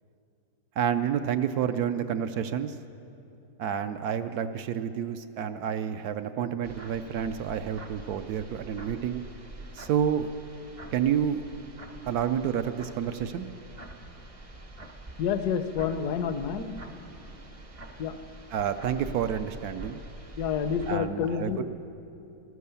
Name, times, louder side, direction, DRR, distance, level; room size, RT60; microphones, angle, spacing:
voice 1, 0.8-2.8 3.6-9.2 9.7-10.3 10.9-11.4 12.0-13.5 18.5-20.0 20.9-21.6, right 8 dB, 70° right, 9 dB, 0.9 m, -29 dB
sound 1, 6.6-21.0, right 1 dB, 35° right, 0.5 m, -45 dB
voice 2, 15.2-16.8 18.0-18.2 20.4-21.6, left 7 dB, 70° left, 10 dB, 1.1 m, -29 dB
14.5 x 11.0 x 6.9 m, 2.6 s
omnidirectional pair, 1.9 m